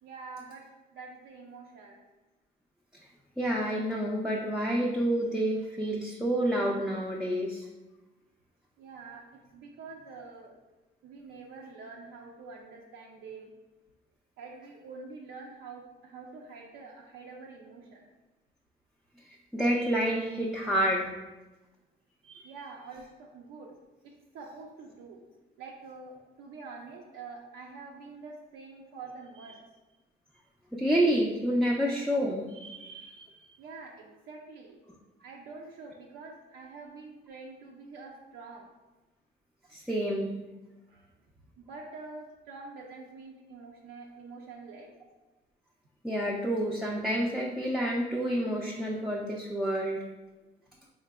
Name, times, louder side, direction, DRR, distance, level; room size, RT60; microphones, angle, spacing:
voice 1, 0.0-0.6 0.9-2.0 8.8-10.5 11.0-13.5 14.4-18.1 22.4-23.7 24.0-25.2 25.6-29.6 33.6-34.8 35.2-38.7 40.9-41.1 41.6-44.9, right 4 dB, 85° right, -2 dB, 0.5 m, -46 dB
voice 2, 3.4-7.6 19.5-21.1 22.3-22.4 30.7-33.2 39.7-40.3 46.0-50.0, equal, ahead, -3 dB, 0.4 m, -29 dB
3.7 x 3.3 x 2.2 m, 1.1 s
cardioid pair, 90°, 20 cm